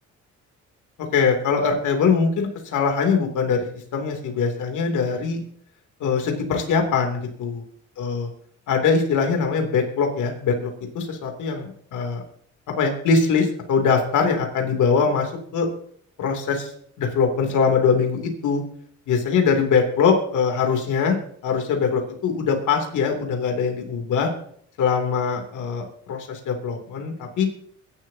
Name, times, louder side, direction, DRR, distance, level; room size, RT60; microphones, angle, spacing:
voice 1, 1.1-3.7 3.9-5.4 6.0-7.6 8.0-8.3 8.7-10.7 10.9-12.2 12.8-15.7 16.2-16.7 17.0-18.6 19.1-21.2 21.4-24.3 24.8-27.5, left 5 dB, 80° left, 3 dB, 3.0 m, -22 dB
22.5 x 11.5 x 2.8 m, 0.64 s
cardioid pair, 90°, 30 cm